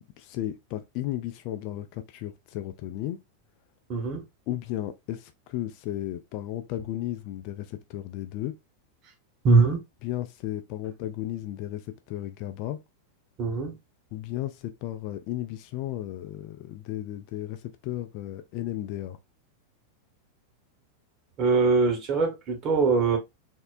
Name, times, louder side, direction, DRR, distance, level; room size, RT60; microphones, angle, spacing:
voice 1, 0.2-3.2 4.5-8.5 10.0-12.8 14.1-19.2, left 13 dB, 45° left, 0.4 m, -34 dB
voice 2, 3.9-4.2 9.4-9.8 13.4-13.7 21.4-23.2, right 4 dB, 35° right, 1.0 m, -22 dB
3.6 x 2.1 x 2.4 m
figure-of-eight pair, 90°, 0 cm